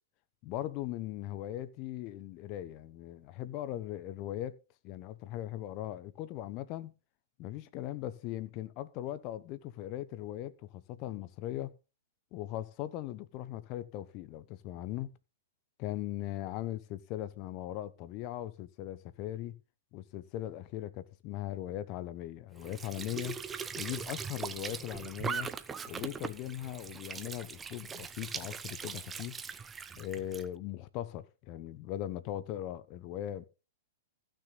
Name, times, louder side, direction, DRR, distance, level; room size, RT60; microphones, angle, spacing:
voice 1, 0.4-4.6 4.8-6.9 7.4-11.7 12.3-15.1 15.8-19.6 19.9-23.4 23.7-25.5 25.8-29.4 29.9-33.4, left 13 dB, 40° left, 1.0 m, -39 dB
Squeak / Sink (filling or washing) / Trickle dribble, 22.6-30.5, right 6 dB, 15° right, 0.7 m, -40 dB
15.0 x 6.4 x 3.9 m
hypercardioid pair, 110°, 0 cm